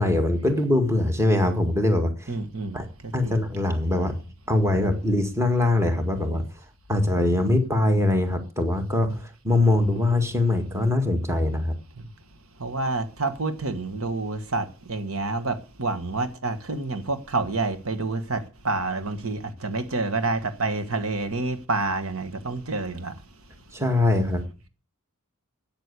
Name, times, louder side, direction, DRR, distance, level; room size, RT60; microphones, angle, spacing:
voice 1, 0.0-2.4 2.7-2.9 3.1-4.1 4.5-6.4 6.9-11.8 23.7-24.4, left 2 dB, 15° right, 5 dB, 1.9 m, -22 dB
voice 2, 2.3-2.8 3.2-3.4 12.0-12.1 12.6-23.1, right 3 dB, 75° right, 10 dB, 1.5 m, -28 dB
12.5 x 9.0 x 8.3 m, 0.35 s
head